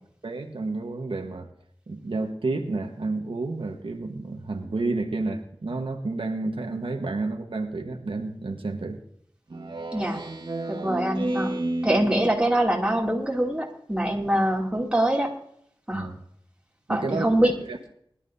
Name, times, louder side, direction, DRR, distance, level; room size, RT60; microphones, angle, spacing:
voice 1, 0.2-1.5 1.9-9.0 15.9-16.2 16.9-17.3 17.7-17.8, right 3 dB, 85° right, 3 dB, 1.3 m, -30 dB
Speech synthesizer, 9.5-12.5, right 2 dB, 70° right, 1.8 m, -31 dB
voice 2, 9.9-10.2 10.7-11.5 11.8-15.3 15.9-16.1 16.9-17.5, right 1 dB, 10° right, -2 dB, 2.8 m, -24 dB
21.0 x 11.5 x 2.8 m, 0.68 s
wide cardioid pair, 65°, 9 cm